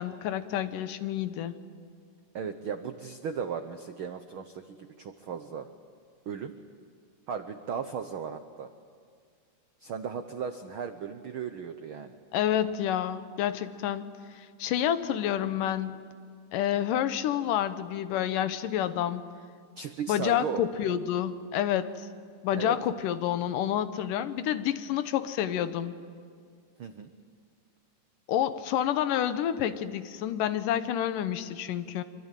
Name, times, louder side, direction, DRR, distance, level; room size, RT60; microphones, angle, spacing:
voice 1, 0.0-1.6 12.3-14.1 14.4-16.1 16.5-19.2 20.1-22.1 22.4-25.9 28.3-32.0, left 10 dB, 85° left, 12 dB, 2.6 m, -29 dB
voice 2, 2.3-5.7 6.3-6.6 7.3-8.7 9.8-12.2 19.8-20.6 22.6-22.8 26.8-27.1, right 6 dB, 75° right, 8 dB, 1.2 m, -36 dB
25.5 x 24.0 x 9.1 m, 2.1 s
omnidirectional pair, 3.7 m